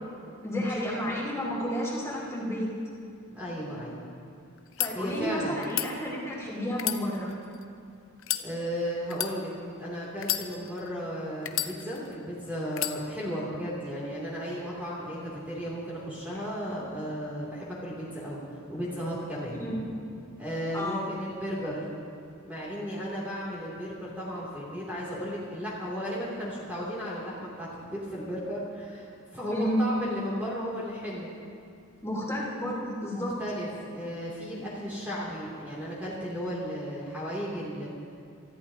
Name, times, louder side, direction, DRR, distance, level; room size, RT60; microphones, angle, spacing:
voice 1, 0.4-2.7 4.8-7.4 19.6-19.8 20.7-21.2 29.5-29.9 32.0-33.3, equal, 15° left, -6 dB, 3.5 m, -31 dB
voice 2, 3.3-4.0 4.9-5.6 8.3-9.5 9.8-18.4 18.7-19.6 20.4-21.9 22.4-31.3 33.1-37.9, equal, 10° right, -7 dB, 2.9 m, -35 dB
sound 1, 4.6-4.9 5.6-5.9 6.7-7.6 8.2-8.5 9.1-9.3 10.2-10.9 11.5-12.1 12.7-13.0, left 12 dB, 65° left, 0.7 m, -31 dB
28.0 x 14.5 x 2.9 m, 2.4 s
head